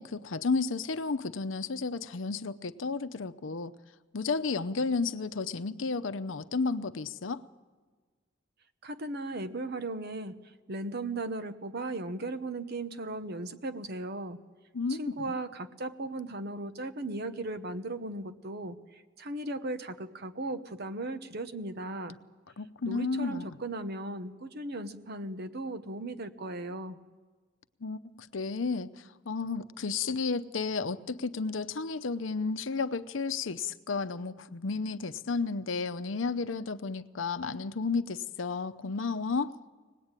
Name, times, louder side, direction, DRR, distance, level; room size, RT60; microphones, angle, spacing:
voice 1, 0.0-3.7 4.1-7.4 14.7-15.4 22.6-23.6 27.8-39.5, left 4 dB, 85° left, 13 dB, 0.7 m, -32 dB
voice 2, 8.8-10.3 10.7-14.4 14.9-18.8 19.2-22.2 22.8-27.0, right 2 dB, 55° right, 10 dB, 1.1 m, -37 dB
23.5 x 19.5 x 9.0 m, 1.4 s
head